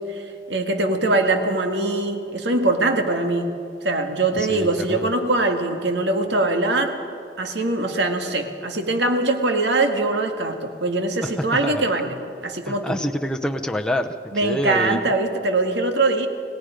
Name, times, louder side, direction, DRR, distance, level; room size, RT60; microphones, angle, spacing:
voice 1, 0.1-3.5 3.8-7.0 7.4-13.0 14.3-16.3, right 2 dB, 80° right, 5 dB, 1.9 m, -22 dB
voice 2, 4.4-5.1 11.2-11.9 12.7-14.1 14.4-15.1, equal, 5° left, 4 dB, 0.7 m, -27 dB
29.0 x 18.0 x 5.1 m, 2.4 s
head